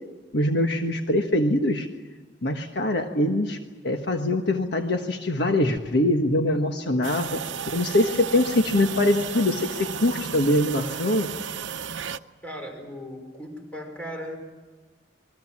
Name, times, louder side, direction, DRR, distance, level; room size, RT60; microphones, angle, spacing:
voice 1, 0.3-1.9 2.4-3.6 3.8-7.4 7.7-11.3, left 1 dB, 60° left, 4 dB, 1.4 m, -23 dB
sound 1, 7.0-12.2, right 7 dB, 80° right, 0.8 m, -33 dB
voice 2, 12.4-14.4, equal, 5° left, 2 dB, 5.3 m, -37 dB
27.5 x 22.5 x 7.4 m, 1.3 s
head